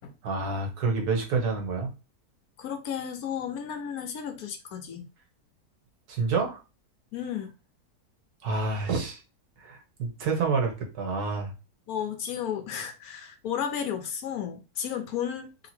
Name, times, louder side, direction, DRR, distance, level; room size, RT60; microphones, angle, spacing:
voice 1, 0.2-1.9 6.1-6.6 8.4-9.2 9.6-11.5, right 4 dB, 80° right, 1.7 m, -28 dB
voice 2, 2.6-5.0 7.1-7.5 11.9-15.7, left 8 dB, 75° left, 1.3 m, -33 dB
3.5 x 2.9 x 4.2 m
omnidirectional pair, 1.6 m